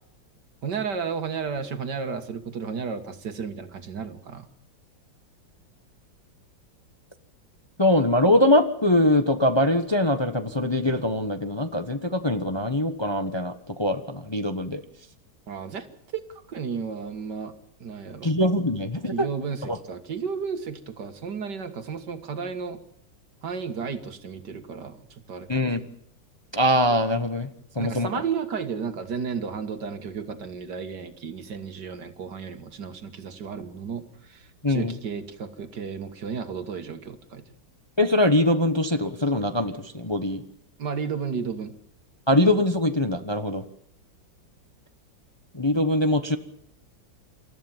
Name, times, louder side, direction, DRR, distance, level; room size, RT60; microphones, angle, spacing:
voice 1, 0.6-4.5 15.5-15.9 16.3-17.5 17.8-18.3 19.1-22.8 23.4-25.7 27.8-37.4 40.8-41.7, right 6 dB, 65° right, 9 dB, 2.2 m, -33 dB
voice 2, 7.8-14.8 18.2-19.3 19.7-19.8 25.5-25.8 26.5-27.5 27.7-28.1 34.6-34.9 38.0-40.4 42.3-43.6 45.5-46.4, left 1 dB, 15° left, 8 dB, 1.1 m, -22 dB
28.0 x 14.5 x 7.4 m, 0.74 s
omnidirectional pair, 2.0 m